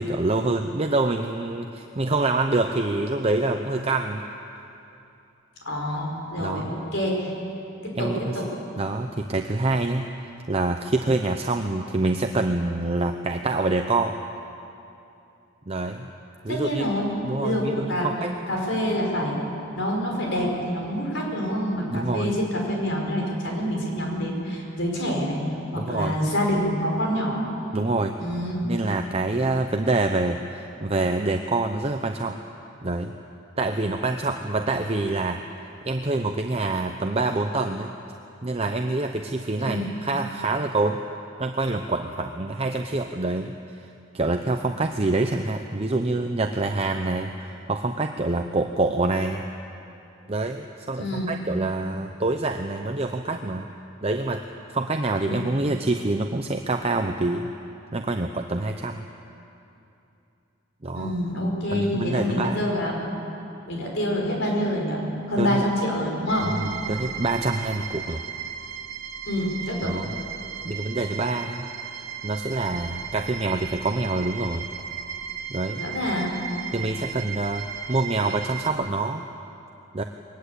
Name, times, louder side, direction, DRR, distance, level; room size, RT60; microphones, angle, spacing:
voice 1, 0.0-4.2 6.4-6.7 8.0-8.4 8.8-10.1 10.5-14.2 15.7-16.1 16.4-16.9 17.2-18.4 21.9-22.3 25.8-26.2 27.7-28.2 28.6-32.4 32.8-33.1 33.6-35.4 35.8-37.9 38.4-41.0 41.4-43.5 44.1-49.4 50.3-53.7 54.0-54.4 54.7-57.5 57.9-59.0 60.8-61.1 61.7-62.7 65.4-65.6 66.6-68.2 69.8-70.1 70.6-71.7 72.2-74.7 75.5-75.8 76.7-77.6 77.9-79.2 79.9-80.0, right 2 dB, 30° right, 5 dB, 0.7 m, -26 dB
voice 2, 5.7-7.3 7.8-8.5 16.5-17.1 17.4-18.1 18.5-19.4 19.7-25.4 25.7-27.4 28.2-28.7 39.6-39.9 51.0-51.3 55.2-55.4 60.9-63.0 63.7-65.0 65.3-66.5 69.3-69.9 75.8-76.4, equal, 60° left, -1 dB, 5.5 m, -26 dB
sound 1, 66.3-78.7, right 8 dB, 75° right, 2.0 m, -36 dB
22.5 x 19.5 x 8.3 m, 2.7 s
head